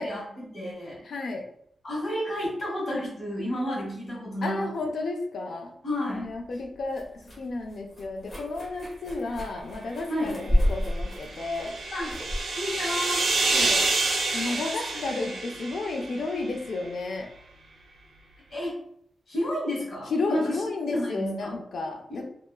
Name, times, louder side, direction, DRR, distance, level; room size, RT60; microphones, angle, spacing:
voice 1, 0.0-1.0 1.8-4.7 5.8-6.3 10.1-10.4 11.9-12.1 12.5-13.2 14.3-14.6 14.9-15.0 18.5-18.8 19.3-20.5 20.9-21.6 22.1-22.3, left 1 dB, 50° left, -6 dB, 1.2 m, -31 dB
voice 2, 1.0-1.4 4.4-5.7 6.1-7.1 7.4-11.7 13.5-13.9 14.3-17.3 20.1-22.3, left 3 dB, 70° left, 3 dB, 0.4 m, -32 dB
sound 1, 6.1-13.9, equal, 25° left, 0.9 m, -32 dB
sound 2, 10.8-16.4, right 3 dB, 70° right, 0.5 m, -28 dB
2.8 x 2.3 x 2.3 m, 0.68 s
wide cardioid pair, 115°, 0 cm